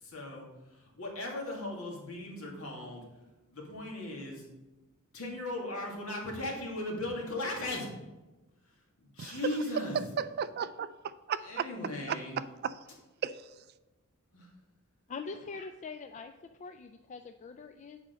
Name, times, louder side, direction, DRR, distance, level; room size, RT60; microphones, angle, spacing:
voice 1, 0.0-3.1 3.5-4.4 5.1-7.9 9.0-10.1 11.4-12.4 14.3-14.5, left 1 dB, 70° left, -1 dB, 2.2 m, -37 dB
voice 2, 10.2-11.7 12.1-12.2 12.6-12.8 13.2-13.5, right 8 dB, 45° right, 15 dB, 0.3 m, -35 dB
voice 3, 15.1-18.0, left 4 dB, 35° left, 7 dB, 0.3 m, -43 dB
8.2 x 5.0 x 5.2 m, 1.1 s
head